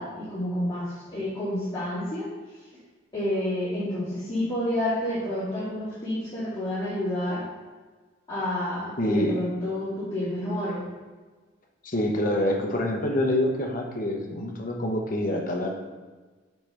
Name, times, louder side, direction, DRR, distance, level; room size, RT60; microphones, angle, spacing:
voice 1, 0.0-2.3 3.1-7.4 8.3-10.8, left 1 dB, 20° left, -12 dB, 2.1 m, -29 dB
voice 2, 9.0-9.4 11.8-15.8, left 1 dB, 45° left, 1 dB, 0.9 m, -26 dB
6.6 x 5.4 x 3.4 m, 1.3 s
head